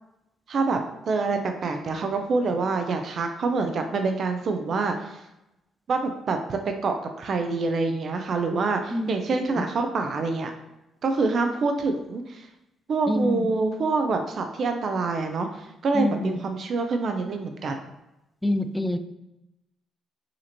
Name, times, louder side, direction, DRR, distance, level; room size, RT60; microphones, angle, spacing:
voice 1, 0.5-0.8 1.1-5.2 5.9-10.5 11.0-12.5 12.9-17.8, right 3 dB, 55° right, 5 dB, 0.5 m, -26 dB
voice 2, 13.1-13.5 15.9-16.4 18.4-19.0, left 1 dB, 5° left, 10 dB, 0.3 m, -26 dB
5.0 x 2.8 x 2.9 m, 0.92 s
cardioid pair, 90°, 0 cm